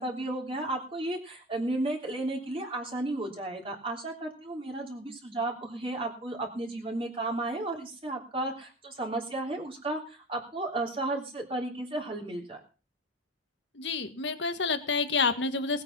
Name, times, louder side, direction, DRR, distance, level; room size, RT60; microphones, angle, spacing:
voice 1, 0.0-12.6, right 2 dB, 30° right, 0 dB, 3.5 m, -33 dB
voice 2, 13.8-15.8, left 4 dB, 70° left, 10 dB, 1.8 m, -28 dB
19.0 x 8.9 x 6.2 m, 0.35 s
head